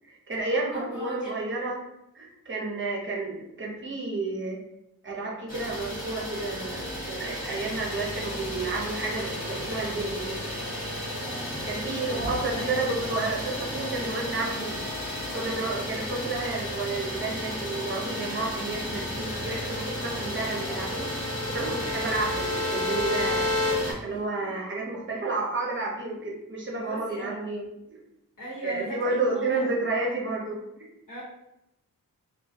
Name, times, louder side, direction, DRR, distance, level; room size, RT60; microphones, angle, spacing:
voice 1, 0.0-1.8 2.1-4.6 5.0-10.4 11.7-14.8 15.3-23.5 23.9-28.0 28.6-30.8, right 3 dB, 35° right, -3 dB, 0.7 m, -31 dB
voice 2, 0.7-1.5 12.1-12.8 13.1-13.3 24.1-24.5 26.7-27.4 28.4-29.6 31.1-31.2, right 1 dB, 60° left, -9 dB, 1.1 m, -38 dB
Idling, 5.5-23.9, equal, 25° left, 1.2 m, -34 dB
sound 1, 18.8-23.7, left 2 dB, 5° left, 0.6 m, -32 dB
2.2 x 2.2 x 2.7 m, 0.86 s
wide cardioid pair, 95°, 35 cm